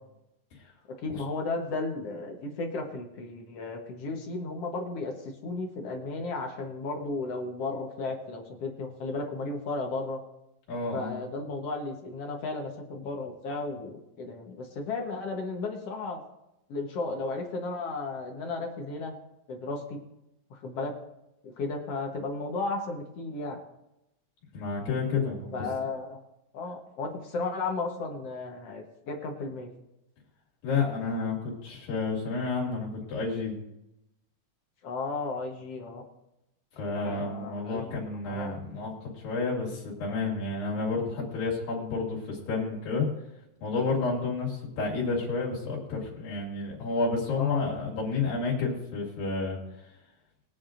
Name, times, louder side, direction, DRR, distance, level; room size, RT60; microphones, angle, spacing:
voice 1, 1.0-10.2 10.9-16.2 16.7-19.1 19.5-20.0 20.5-20.9 21.4-23.6 25.5-26.2 26.5-29.7 34.8-36.0 36.8-38.0 38.2-38.5 47.3-47.7, left 3 dB, 60° left, 2 dB, 1.8 m, -34 dB
voice 2, 10.7-11.2 24.5-25.7 30.6-33.6 36.8-43.1 43.6-49.6, left 4 dB, 90° left, -4 dB, 4.1 m, -30 dB
21.0 x 9.3 x 2.6 m, 0.89 s
omnidirectional pair, 3.9 m